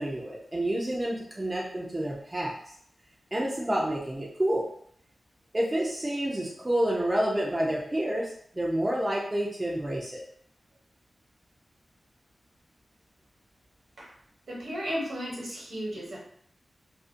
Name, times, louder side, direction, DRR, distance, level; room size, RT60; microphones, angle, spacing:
voice 1, 0.0-2.5 3.3-4.6 5.5-10.2, right 1 dB, 20° right, -4 dB, 0.4 m, -29 dB
voice 2, 14.5-16.2, equal, 70° right, -5 dB, 0.9 m, -34 dB
2.4 x 2.1 x 2.5 m, 0.63 s
wide cardioid pair, 150°, 0 cm